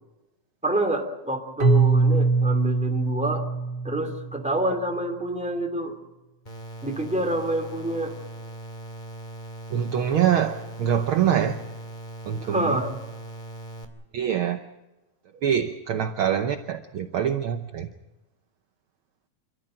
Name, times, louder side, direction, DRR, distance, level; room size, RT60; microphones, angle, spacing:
voice 1, 0.6-3.4 3.8-5.9 6.8-8.1 12.4-12.9, right 1 dB, ahead, 3 dB, 2.7 m, -27 dB
Keyboard (musical), 1.6-4.5, right 3 dB, 35° right, 3.1 m, -22 dB
sound 1, 6.5-13.9, right 1 dB, 15° left, 2.2 m, -40 dB
voice 2, 9.7-11.6 12.3-12.8 14.1-14.6 15.4-17.9, right 9 dB, 70° right, 7 dB, 1.3 m, -24 dB
27.5 x 13.5 x 8.8 m, 1.0 s
omnidirectional pair, 3.4 m